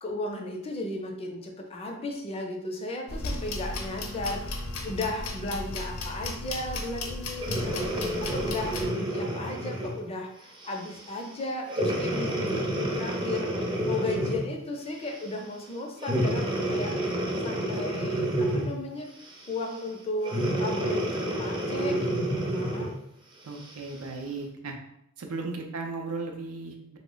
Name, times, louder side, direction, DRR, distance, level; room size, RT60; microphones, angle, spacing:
voice 1, 0.0-19.1 19.5-22.9, left 2 dB, 30° left, 2 dB, 0.4 m, -35 dB
sound 1, 3.1-8.9, left 2 dB, 80° left, 0.6 m, -35 dB
Breathing, 7.4-10.0 10.6-10.9 11.7-14.6 16.0-18.9 20.2-23.0 23.6-23.7, right 1 dB, 25° right, 0.5 m, -29 dB
voice 2, 23.4-24.8 25.2-27.0, right 3 dB, 90° right, 3 dB, 0.5 m, -36 dB
3.1 x 2.0 x 3.8 m, 0.78 s
head